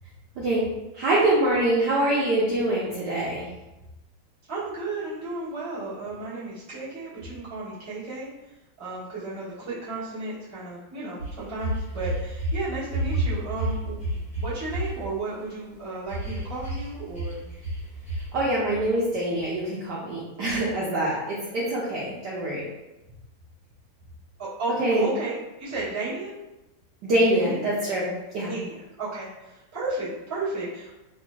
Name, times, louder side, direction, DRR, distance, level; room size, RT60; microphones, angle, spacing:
voice 1, 0.9-3.4 18.3-22.6 24.7-25.1 27.0-28.1 28.3-28.5, right 1 dB, 70° right, -6 dB, 1.0 m, -24 dB
voice 2, 4.5-8.3 8.8-17.4 24.4-26.3 27.3-27.6 28.5-30.9, right 2 dB, 10° right, -12 dB, 0.8 m, -33 dB
sound 1, 11.2-12.6 12.9-14.8 16.1-16.8 17.1-17.3 17.6-17.8 18.1-18.2, right 1 dB, 55° left, 1.9 m, -28 dB
3.9 x 2.7 x 2.2 m, 1.0 s
omnidirectional pair, 2.3 m